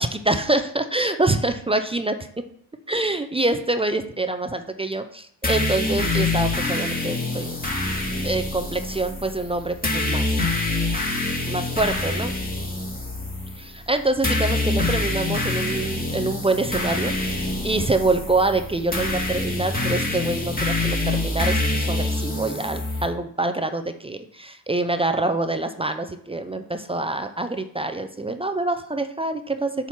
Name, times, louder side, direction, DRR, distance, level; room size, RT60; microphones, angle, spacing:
voice 1, 0.0-2.2 2.9-7.6 8.2-10.2 11.5-12.3 13.6-29.9, right 2 dB, 10° right, 7 dB, 0.5 m, -25 dB
sound 1, 5.4-23.0, left 2 dB, 15° left, 1.9 m, -26 dB
8.1 x 2.9 x 5.7 m, 0.64 s
hypercardioid pair, 60°, 49 cm